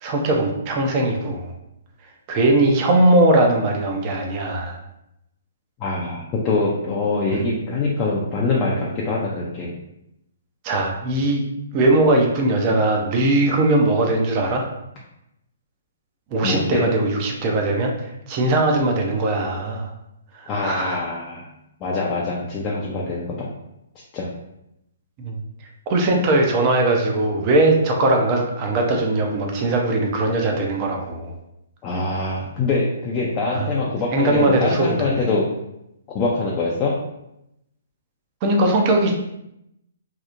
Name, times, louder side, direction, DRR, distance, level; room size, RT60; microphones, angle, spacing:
voice 1, 0.0-1.5 2.3-4.8 7.3-7.4 10.6-11.4 11.7-14.6 16.3-17.9 18.3-19.9 20.4-21.0 25.2-25.4 25.9-31.3 33.5-33.6 34.1-35.2 38.4-39.1, right 2 dB, 35° right, 1 dB, 0.5 m, -20 dB
voice 2, 5.8-9.8 16.4-16.8 20.5-21.5 21.8-23.5 24.1-24.3 31.8-35.5 36.1-36.9, left 3 dB, 25° left, -4 dB, 0.4 m, -24 dB
2.8 x 2.0 x 2.4 m, 0.83 s
hypercardioid pair, 130°, 0 cm